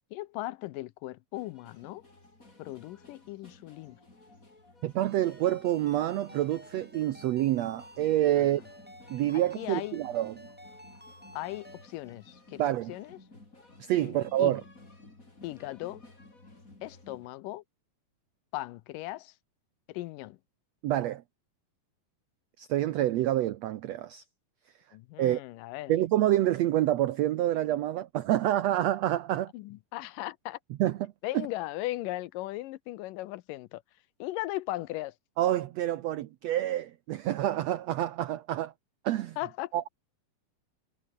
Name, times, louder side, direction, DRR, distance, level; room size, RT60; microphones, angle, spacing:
voice 1, 0.1-2.0 2.6-4.0 8.4-8.5 9.3-10.0 11.3-12.6 12.9-13.2 14.0-14.6 15.4-16.0 16.8-17.6 18.5-19.3 19.9-20.4 24.9-25.9 29.5-30.6 31.2-33.8 34.2-35.1 39.4-39.7, left 17 dB, 80° left, 2.2 m, -37 dB
sound 1, 1.3-17.3, left 2 dB, 20° left, 5.2 m, -55 dB
voice 2, 4.8-8.6 9.1-10.5 12.6-12.9 13.8-14.6 20.8-21.2 22.6-24.2 25.2-25.4 25.9-29.5 30.8-31.5 35.4-38.7 39.0-39.4 39.7-39.9, right 13 dB, 80° right, 1.5 m, -27 dB
Ringtone, 5.0-11.9, equal, 5° right, 4.0 m, -52 dB
omnidirectional pair, 4.0 m